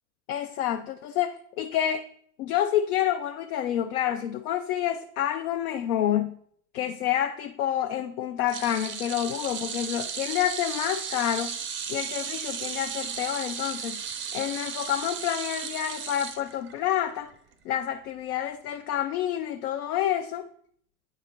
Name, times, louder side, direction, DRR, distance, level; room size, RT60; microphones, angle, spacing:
voice 1, 0.3-2.0 2.4-6.4 6.7-11.6 11.9-14.0 14.3-17.3 17.7-20.5, left 11 dB, 70° left, 6 dB, 0.5 m, -28 dB
sound 1, 8.5-17.0 17.3-17.5 18.7-18.8, right 7 dB, 25° right, 0.5 m, -35 dB
9.6 x 3.8 x 2.9 m, 0.63 s
hypercardioid pair, 80°, 47 cm